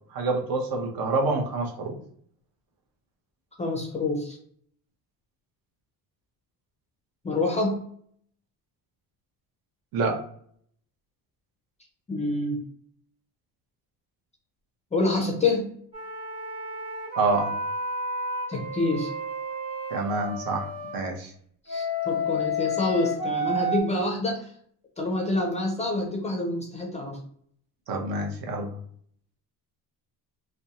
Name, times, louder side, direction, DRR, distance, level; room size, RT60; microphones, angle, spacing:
voice 1, 0.1-2.0 9.9-10.2 17.1-17.5 19.9-21.3 27.9-28.8, right 3 dB, 60° right, 3 dB, 0.7 m, -27 dB
voice 2, 3.6-4.4 7.2-7.8 12.1-12.6 14.9-15.7 18.5-19.1 21.7-24.5 25.0-27.2, left 2 dB, 20° left, 1 dB, 0.4 m, -27 dB
sound 1, 15.9-21.0 21.7-23.8, left 1 dB, 15° right, 1.0 m, -31 dB
2.5 x 2.1 x 2.7 m, 0.62 s
cardioid pair, 150°, 39 cm